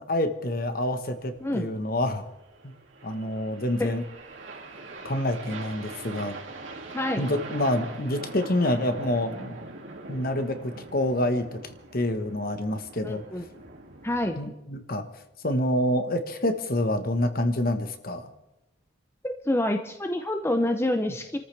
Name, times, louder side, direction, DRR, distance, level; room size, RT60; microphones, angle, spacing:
voice 1, 0.0-2.3 2.6-2.7 3.0-4.0 5.0-6.4 7.2-9.6 10.1-13.2 14.4-15.0 15.4-18.3, left 1 dB, 50° left, 7 dB, 1.4 m, -27 dB
sound 1, 1.0-14.4, right 3 dB, 80° right, 2.7 m, -42 dB
voice 2, 6.9-7.3 13.0-13.4 14.0-14.4 19.2-21.4, left 1 dB, 15° left, 6 dB, 0.7 m, -27 dB
28.5 x 14.0 x 3.4 m, 0.92 s
head